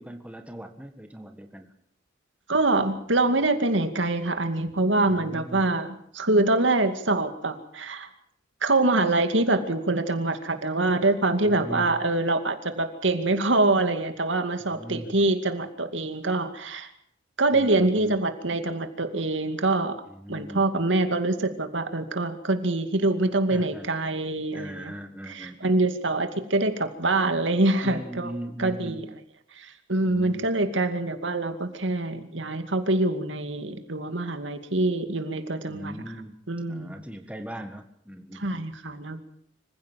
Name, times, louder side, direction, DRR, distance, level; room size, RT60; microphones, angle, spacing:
voice 1, 0.0-1.7 5.1-5.7 11.4-11.9 14.6-15.1 17.5-18.2 20.1-20.6 23.5-23.9 24.5-25.8 27.8-29.1 30.0-30.5 35.7-36.4 36.7-38.6, equal, 5° right, 5 dB, 1.6 m, -39 dB
voice 2, 2.5-8.1 8.6-16.9 17.4-20.0 20.3-24.9 25.2-28.3 28.6-29.1 29.6-35.9 36.5-37.0 38.3-39.2, right 2 dB, 85° right, 8 dB, 2.4 m, -25 dB
25.5 x 16.0 x 7.6 m, 0.69 s
head